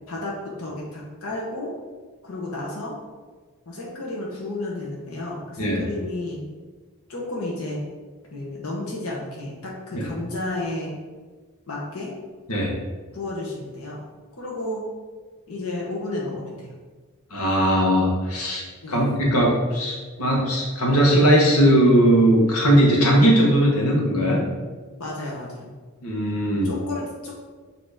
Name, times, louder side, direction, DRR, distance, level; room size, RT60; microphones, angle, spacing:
voice 1, 0.6-1.7 2.2-2.9 3.7-6.5 7.1-7.8 8.3-11.0 11.7-12.1 13.1-14.0 14.4-14.8 15.5-16.7 18.8-19.0 25.0-25.7 26.6-27.3, left 2 dB, 65° left, -4 dB, 1.3 m, -32 dB
voice 2, 17.3-24.4 26.0-26.7, equal, 85° left, -2 dB, 1.4 m, -19 dB
6.9 x 3.0 x 5.0 m, 1.4 s
head